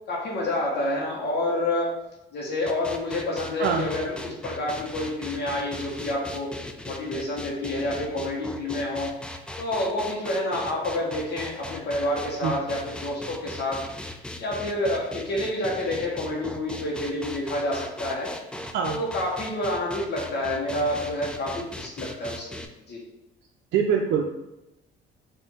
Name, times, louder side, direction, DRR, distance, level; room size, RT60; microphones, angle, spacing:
voice 1, 0.1-1.9 2.3-6.5 6.8-9.1 9.6-13.8 14.4-18.3 18.8-22.6 22.9-23.0, left 1 dB, 60° left, -3 dB, 1.2 m, -28 dB
sound 1, 2.7-22.7, left 1 dB, 5° left, 0.4 m, -38 dB
voice 2, 23.7-24.2, right 7 dB, 65° right, 1 dB, 0.5 m, -23 dB
4.4 x 2.7 x 4.3 m, 0.92 s
cardioid pair, 90°, 20 cm